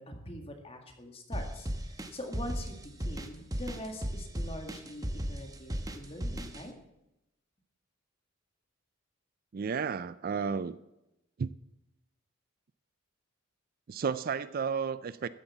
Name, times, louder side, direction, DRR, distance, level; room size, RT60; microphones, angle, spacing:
voice 1, 0.0-6.7, left 1 dB, 25° left, 3 dB, 1.9 m, -44 dB
sound 1, 1.3-6.6, equal, 15° right, 1.0 m, -35 dB
voice 2, 9.5-10.7 11.4-11.5 13.9-15.3, right 6 dB, 45° right, 15 dB, 0.4 m, -32 dB
13.5 x 8.0 x 7.2 m, 0.90 s
head